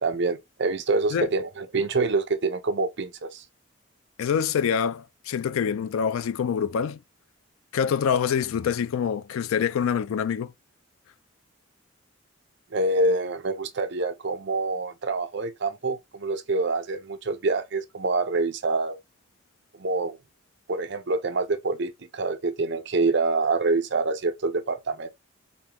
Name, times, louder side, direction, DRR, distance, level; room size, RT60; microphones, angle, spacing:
voice 1, 0.0-3.4 12.7-19.0 19.8-20.2 20.7-25.1, right 3 dB, 60° right, 0.6 m, -26 dB
voice 2, 4.2-7.0 7.7-10.5, left 7 dB, 85° left, 0.3 m, -25 dB
5.3 x 2.3 x 2.9 m
head